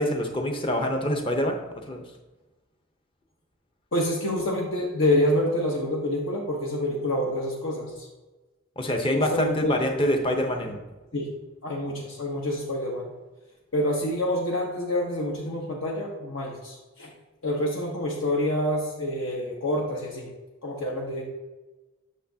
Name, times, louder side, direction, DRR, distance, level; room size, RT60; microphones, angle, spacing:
voice 1, 0.0-2.0 8.8-10.8, left 1 dB, 25° left, 3 dB, 0.7 m, -26 dB
voice 2, 3.9-8.1 9.1-9.8 11.1-11.3 11.6-13.1 13.7-17.1 17.4-20.3 20.6-21.2, left 1 dB, 65° left, -2 dB, 1.0 m, -27 dB
8.3 x 6.2 x 2.8 m, 1.1 s
head